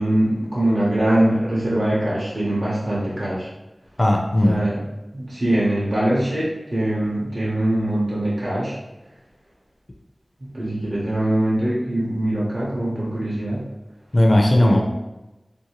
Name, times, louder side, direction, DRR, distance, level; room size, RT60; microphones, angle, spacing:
voice 1, 0.0-3.5 4.4-4.8 5.1-8.7 10.4-13.6 14.6-14.8, right 1 dB, 50° right, -8 dB, 0.7 m, -22 dB
voice 2, 4.0-4.6 14.1-14.8, left 1 dB, 40° left, 1 dB, 0.4 m, -16 dB
2.6 x 2.2 x 2.9 m, 1.0 s
wide cardioid pair, 60°, 0 cm